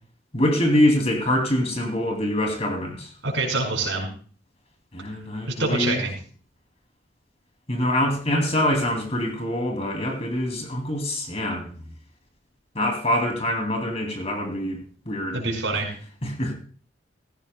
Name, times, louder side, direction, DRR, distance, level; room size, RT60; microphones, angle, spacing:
voice 1, 0.3-3.1 4.9-6.0 7.7-11.7 12.7-14.8 15.1-15.4 16.2-16.5, left 1 dB, 35° left, 3 dB, 2.5 m, -24 dB
voice 2, 3.2-4.1 5.5-6.1 15.3-15.9, right 3 dB, 80° right, 0 dB, 4.6 m, -25 dB
16.0 x 14.5 x 2.2 m, 0.42 s
head